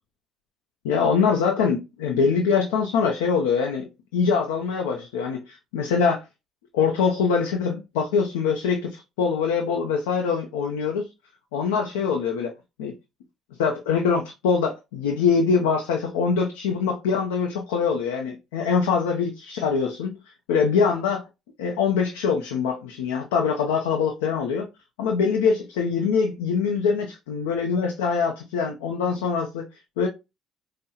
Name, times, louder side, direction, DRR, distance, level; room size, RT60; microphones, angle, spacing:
voice 1, 0.8-6.2 6.7-11.1 11.5-12.5 12.8-12.9 13.6-20.2 20.5-21.2 21.6-24.7 25.0-29.7 30.0-30.1, left 5 dB, 90° left, 0.6 m, -23 dB
5.3 x 2.1 x 2.8 m
supercardioid pair, 65°, 0 cm